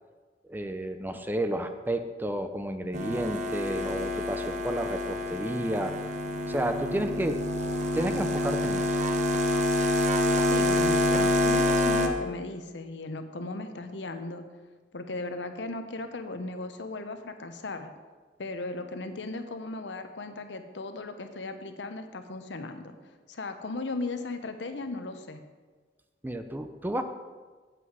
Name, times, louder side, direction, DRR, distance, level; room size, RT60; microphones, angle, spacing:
voice 1, 0.5-5.9 6.5-7.4 7.9-9.0 26.2-27.0, right 1 dB, 10° right, 8 dB, 0.5 m, -31 dB
sound 1, 2.9-12.1, left 1 dB, 40° right, 0.8 m, -27 dB
voice 2, 10.5-14.4 14.9-17.9 18.4-23.0 23.3-25.4, left 2 dB, 80° left, 8 dB, 0.8 m, -36 dB
8.0 x 7.7 x 4.8 m, 1.4 s
head